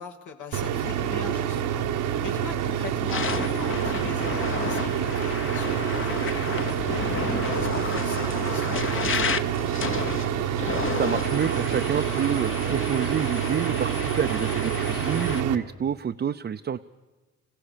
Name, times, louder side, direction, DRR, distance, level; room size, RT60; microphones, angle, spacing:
voice 1, 0.0-1.8 2.2-9.3, left 6 dB, 75° left, 2 dB, 2.5 m, -41 dB
sound 1, 0.5-15.6, right 9 dB, 85° right, 1.3 m, -27 dB
sound 2, 2.2-2.5 2.9-15.4, left 6 dB, 45° left, 1.1 m, -32 dB
voice 2, 10.7-16.8, right 8 dB, 35° right, 6 dB, 0.6 m, -28 dB
26.0 x 16.0 x 6.8 m, 1.2 s
cardioid pair, 90°, 30 cm